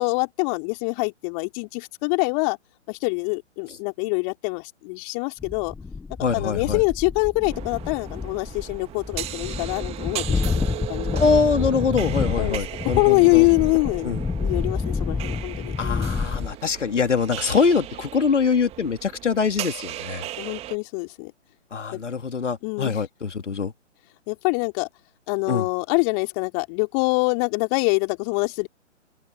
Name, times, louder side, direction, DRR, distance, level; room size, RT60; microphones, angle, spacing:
voice 1, 0.0-2.6 2.9-5.7 6.3-11.3 12.4-12.6 13.0-16.2 20.4-21.3 21.9-22.0 22.6-23.0 24.3-24.9 25.3-28.7, left 37 dB, 25° left, 3.4 m, -24 dB
sound 1, 5.4-16.5, left 4 dB, ahead, 0.4 m, -29 dB
voice 2, 6.2-6.8 11.2-13.5 14.0-14.2 15.8-20.3 21.7-23.7 25.5-25.7, left 5 dB, 70° left, 2.9 m, -23 dB
sound 2, 7.5-20.8, right 14 dB, 15° right, 1.9 m, -37 dB
open air
figure-of-eight pair, 130°, 37 cm